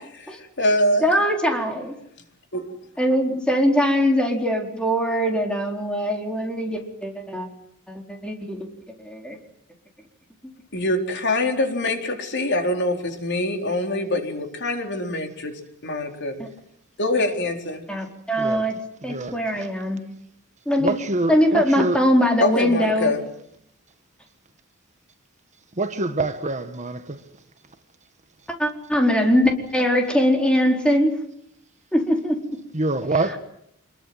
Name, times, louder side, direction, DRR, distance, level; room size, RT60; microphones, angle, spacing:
voice 1, 0.3-1.1 2.5-2.7 10.7-16.4 17.0-17.8 22.4-23.2, left 1 dB, 55° left, 4.1 m, -24 dB
voice 2, 1.0-1.9 3.0-7.5 7.9-8.7 9.0-9.4 16.4-16.5 17.9-18.7 19.0-20.0 20.7-21.0 21.3-23.1 28.5-31.2 31.9-32.4, equal, 5° left, 4.4 m, -21 dB
voice 3, 19.0-19.7 20.7-22.0 25.7-27.3 32.7-33.4, right 2 dB, 35° right, 1.5 m, -26 dB
26.0 x 22.0 x 7.9 m
head